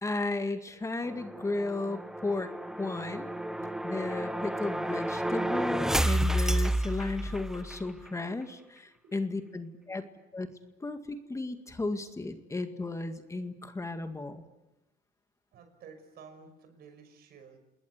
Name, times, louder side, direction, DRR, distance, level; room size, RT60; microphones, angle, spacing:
voice 1, 0.0-2.5 2.8-3.4 3.8-10.1 10.3-10.5 10.8-14.4, left 2 dB, 15° left, 7 dB, 2.0 m, -34 dB
sound 1, 1.0-7.8, right 1 dB, 5° right, 1.1 m, -31 dB
voice 2, 15.5-17.6, right 5 dB, 70° right, 8 dB, 5.9 m, -52 dB
28.5 x 20.5 x 8.3 m, 0.97 s
cardioid pair, 110°, 17 cm